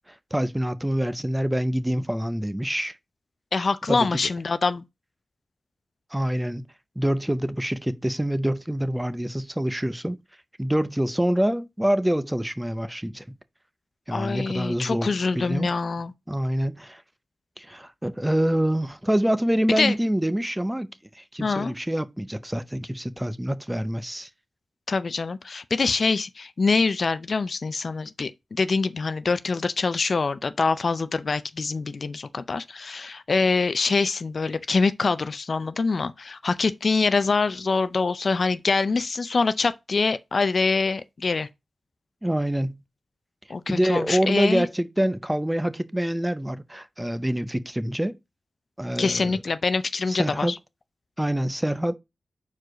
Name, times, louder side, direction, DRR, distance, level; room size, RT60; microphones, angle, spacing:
voice 1, 0.3-2.9 3.9-4.1 6.1-6.7 7.0-10.2 10.6-13.3 14.1-15.7 16.3-17.0 17.6-20.9 21.1-24.3 42.2-42.8 43.7-48.2 48.8-49.4 50.1-50.5 51.2-52.0, right 1 dB, 10° right, 0.6 m, -26 dB
voice 2, 3.5-4.8 14.1-16.1 19.8-19.9 21.4-21.7 24.9-41.5 43.5-44.7 49.0-50.6, left 4 dB, 60° left, 0.4 m, -25 dB
4.7 x 4.6 x 4.8 m
cardioid pair, 50°, 0 cm